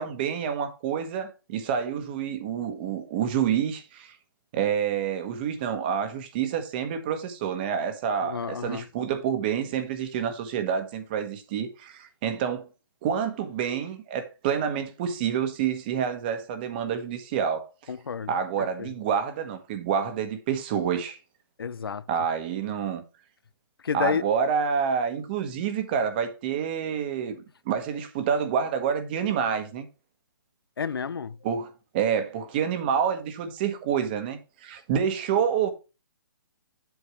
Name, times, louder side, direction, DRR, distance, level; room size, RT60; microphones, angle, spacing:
voice 1, 0.0-4.2 4.5-12.7 13.0-17.7 18.3-21.2 22.1-23.0 23.9-29.8 31.4-35.7, right 7 dB, 25° right, 1.3 m, -28 dB
voice 2, 8.2-8.9 17.9-18.3 18.8-18.9 21.6-22.1 23.8-24.2 30.8-31.4, left 6 dB, 90° left, 0.7 m, -30 dB
8.4 x 8.2 x 3.1 m
hypercardioid pair, 165°, 12 cm